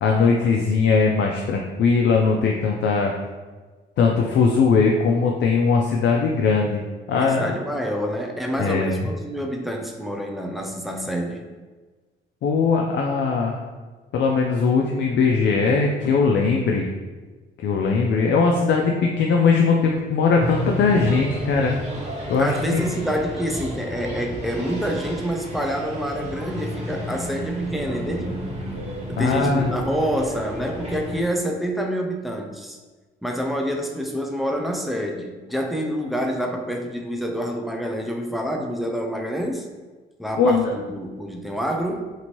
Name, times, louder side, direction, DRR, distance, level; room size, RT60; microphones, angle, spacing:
voice 1, 0.0-3.1 4.0-7.5 8.6-9.0 12.4-13.6 14.1-16.9 17.6-21.7 22.3-22.8 29.2-29.7 40.4-40.7, left 4 dB, 65° left, 0 dB, 0.4 m, -20 dB
voice 2, 7.1-11.5 22.4-28.3 29.1-32.8 33.2-39.7 40.2-42.1, equal, ahead, 2 dB, 0.4 m, -27 dB
sound 1, 20.4-31.2, equal, 30° right, 1.2 m, -32 dB
2.8 x 2.6 x 2.9 m, 1.3 s
cardioid pair, 90°, 20 cm